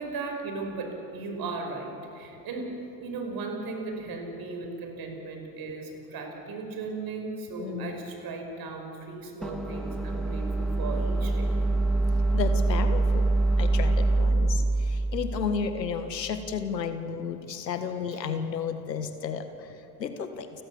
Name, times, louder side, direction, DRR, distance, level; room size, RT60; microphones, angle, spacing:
voice 1, 0.0-11.8 14.0-14.4 18.1-18.2, right 3 dB, 45° right, 4 dB, 5.4 m, -37 dB
voice 2, 7.6-8.0 12.3-13.3 13.6-19.4 20.0-20.5, left 6 dB, 85° left, 9 dB, 1.6 m, -32 dB
sound 1, 9.4-16.5, right 2 dB, ahead, 1.7 m, -25 dB
29.5 x 15.0 x 7.2 m, 2.7 s
figure-of-eight pair, 65°, 49 cm